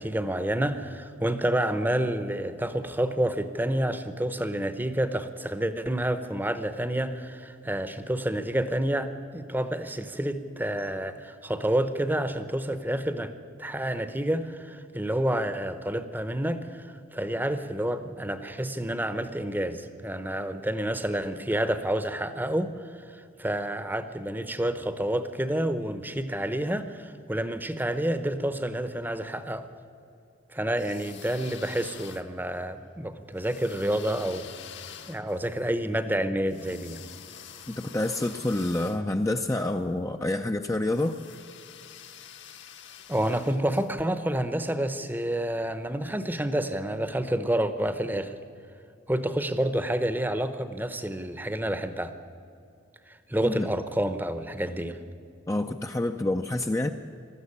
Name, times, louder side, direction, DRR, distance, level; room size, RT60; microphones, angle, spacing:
voice 1, 0.0-13.3 13.6-29.7 30.5-34.5 35.1-37.0 43.1-48.4 49.1-52.1 53.1-55.0, right 1 dB, 10° right, 11 dB, 0.8 m, -29 dB
sound 1, 30.7-32.6 33.4-39.7 40.9-43.9, left 8 dB, 55° left, 1.2 m, -47 dB
voice 2, 37.7-41.2 53.4-53.7 55.5-56.9, left 1 dB, 15° left, 5 dB, 0.5 m, -28 dB
20.0 x 14.0 x 9.7 m, 2.5 s
head